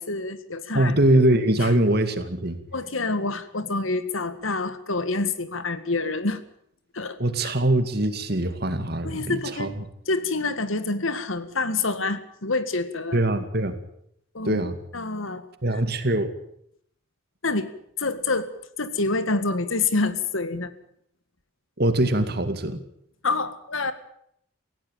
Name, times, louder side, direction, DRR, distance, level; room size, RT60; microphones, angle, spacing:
voice 1, 0.0-0.9 1.6-1.7 2.7-6.4 6.9-7.2 7.4-7.5 9.0-9.8 10.1-13.2 14.3-14.6 14.9-15.4 17.4-17.7 18.0-18.5 18.8-20.7 23.2-23.9, left 3 dB, 80° left, 12 dB, 1.9 m, -27 dB
voice 2, 0.7-2.6 7.2-9.7 13.1-13.7 14.4-14.8 15.6-16.3 21.8-22.8, right 1 dB, 50° right, 9 dB, 2.2 m, -22 dB
19.0 x 16.5 x 9.1 m, 0.70 s
head